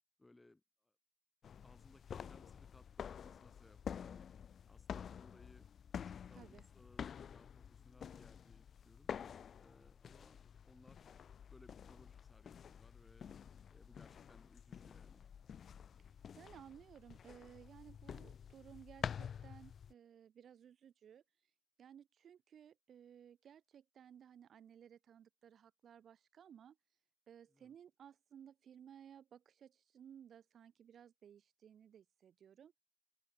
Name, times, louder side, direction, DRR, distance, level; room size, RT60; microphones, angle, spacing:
voice 1, 0.2-0.9 1.6-4.3 4.7-5.7 6.1-9.1 9.6-10.4 10.6-11.2 11.5-13.3 13.7-15.3 27.5-27.7, left 2 dB, 25° left, 7.0 m, -65 dB
sound 1, 1.4-19.9, left 8 dB, 70° left, 0.3 m, -49 dB
voice 2, 6.3-6.6 16.3-21.2 21.8-26.8 27.3-32.8, right 9 dB, 75° right, 4.9 m, -59 dB
open air
supercardioid pair, 45°, 0 cm